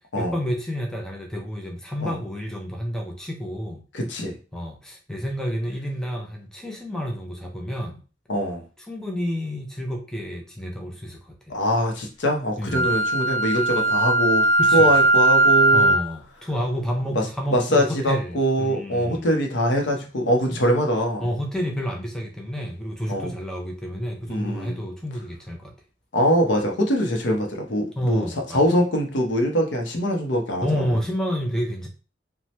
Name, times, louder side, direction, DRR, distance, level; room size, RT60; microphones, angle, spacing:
voice 1, 0.2-3.8 4.5-8.0 8.9-11.6 12.6-12.9 14.6-14.9 15.7-19.3 20.5-20.6 21.2-25.7 28.0-28.6 30.6-31.9, equal, 5° left, 0 dB, 0.5 m, -30 dB
voice 2, 3.9-4.3 8.3-8.6 11.5-14.5 14.7-16.0 17.1-17.2 17.5-21.2 23.1-23.3 24.3-24.8 26.1-28.2 28.5-30.8, equal, 75° left, 2 dB, 0.7 m, -23 dB
Wind instrument woodwind instrument, 12.7-16.1, right 2 dB, 40° left, 0.9 m, -18 dB
2.8 x 2.1 x 3.1 m, 0.35 s
head